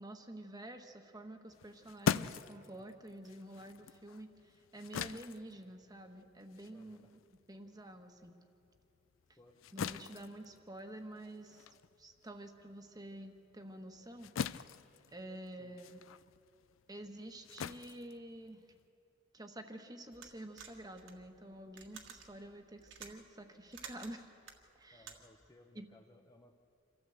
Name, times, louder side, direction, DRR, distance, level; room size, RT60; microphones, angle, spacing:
voice 1, 0.0-7.2 7.5-8.4 9.7-11.7 12.0-14.4 15.1-16.0 16.9-18.6 19.3-24.3 24.8-25.1 25.7-25.9, right 1 dB, 20° right, 6 dB, 1.2 m, -49 dB
sound 1, 1.5-8.3 8.7-18.9, left 6 dB, 85° left, 0.4 m, -42 dB
voice 2, 6.7-7.1 9.4-9.6 15.6-15.7 24.9-26.5, left 1 dB, 20° left, 4 dB, 0.8 m, -62 dB
sound 2, 20.1-25.5, right 6 dB, 70° right, 1.7 m, -53 dB
27.0 x 13.5 x 7.8 m, 2.7 s
head